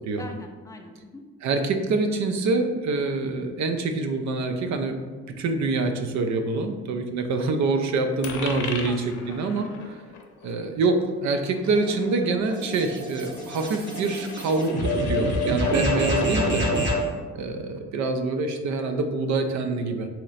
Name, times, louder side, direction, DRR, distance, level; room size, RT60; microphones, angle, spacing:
voice 1, 0.2-1.2 8.9-9.4, left 1 dB, 10° left, 2 dB, 0.5 m, -43 dB
voice 2, 1.4-5.1 5.4-9.9 10.4-16.7 17.3-20.1, right 3 dB, 65° right, 6 dB, 0.5 m, -26 dB
Coin (dropping), 8.2-16.8, left 5 dB, 80° left, 0.6 m, -40 dB
sound 1, 11.6-17.1, equal, 40° right, 0.9 m, -27 dB
3.1 x 2.9 x 3.9 m, 1.4 s
cardioid pair, 90°, 30 cm